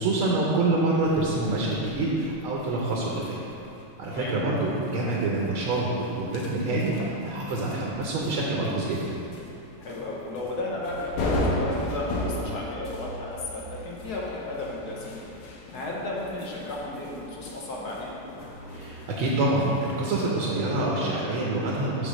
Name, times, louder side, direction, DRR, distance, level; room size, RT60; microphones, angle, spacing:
voice 1, 0.0-3.3 4.0-9.0 18.7-22.1, right 2 dB, 80° right, -4 dB, 1.7 m, -26 dB
sound 1, 1.0-20.0, left 1 dB, 85° left, 1.7 m, -37 dB
voice 2, 4.1-4.6 9.8-18.2, left 2 dB, 60° left, -3 dB, 1.2 m, -34 dB
7.1 x 3.8 x 6.3 m, 3.0 s
omnidirectional pair, 2.3 m